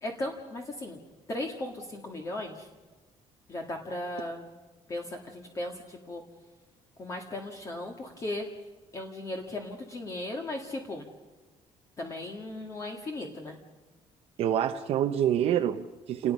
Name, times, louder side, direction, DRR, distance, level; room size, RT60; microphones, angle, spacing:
voice 1, 0.0-1.0 1.3-2.7 3.5-4.5 4.9-6.2 7.0-8.5 8.9-11.1 12.0-13.6, left 1 dB, 25° left, 2 dB, 2.0 m, -36 dB
voice 2, 14.4-16.3, right 10 dB, 60° right, 5 dB, 0.9 m, -27 dB
29.0 x 20.0 x 5.5 m, 1.3 s
cardioid pair, 170°, 12 cm